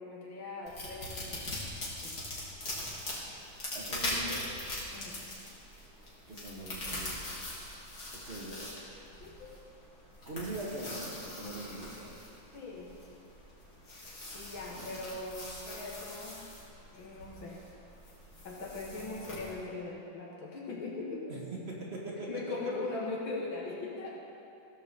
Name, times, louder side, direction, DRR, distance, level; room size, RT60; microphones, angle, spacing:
voice 1, 0.0-1.6 2.0-2.3 4.9-5.2 9.2-9.5 12.5-12.9 14.3-16.4 16.9-17.6 18.4-21.3 22.3-24.1, left 3 dB, 75° left, -4 dB, 2.5 m, -40 dB
sound 1, 0.6-19.5, left 1 dB, 45° left, 2.9 m, -42 dB
voice 2, 3.7-4.4 6.3-7.2 8.3-8.7 10.2-12.2 14.7-14.9 21.3-21.4 21.7-22.3, right 1 dB, 30° right, -3 dB, 2.0 m, -41 dB
16.5 x 5.5 x 6.9 m, 2.7 s
omnidirectional pair, 2.2 m